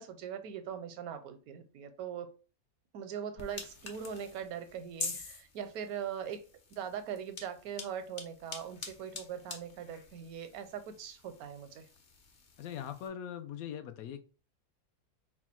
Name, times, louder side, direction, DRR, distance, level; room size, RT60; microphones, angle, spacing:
voice 1, 0.0-2.3 2.9-6.4 6.8-11.8, right 8 dB, 80° right, 1.1 m, -41 dB
sound 1, 3.4-13.1, left 4 dB, 45° left, 0.8 m, -46 dB
voice 2, 12.6-14.2, left 9 dB, 75° left, 1.0 m, -41 dB
4.1 x 2.3 x 4.3 m
omnidirectional pair, 1.5 m